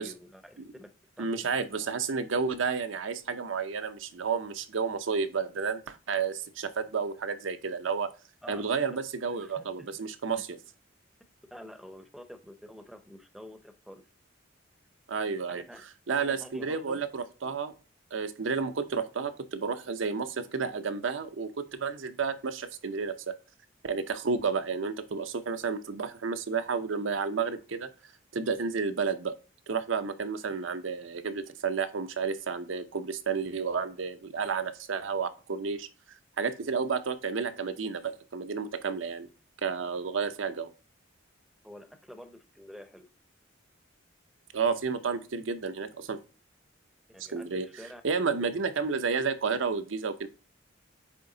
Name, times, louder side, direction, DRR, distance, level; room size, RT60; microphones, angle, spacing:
voice 1, 0.0-1.9 8.4-8.6 9.4-10.0 10.3-10.4 11.5-14.1 15.5-15.8 16.2-17.0 41.6-43.1 47.1-48.5, equal, ahead, 0.6 m, -48 dB
voice 2, 1.2-8.1 8.5-10.5 15.1-15.6 16.1-17.7 18.1-23.4 23.8-27.9 28.3-29.3 29.7-35.9 36.4-39.3 39.6-40.7 44.5-46.2 47.3-47.7 48.0-50.3, right 5 dB, 75° right, 0.7 m, -31 dB
8.1 x 3.5 x 3.8 m
head